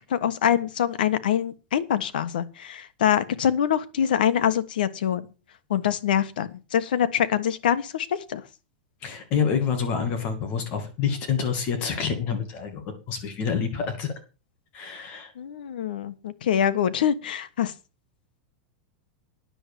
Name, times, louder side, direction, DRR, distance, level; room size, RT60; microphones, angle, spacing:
voice 1, 0.1-5.2 5.7-8.4 15.4-17.7, left 9 dB, 85° left, 13 dB, 1.4 m, -24 dB
voice 2, 9.0-14.1 14.7-15.3, left 6 dB, 30° left, 7 dB, 2.2 m, -27 dB
10.0 x 7.4 x 6.9 m, 0.32 s
supercardioid pair, 170°, 5 cm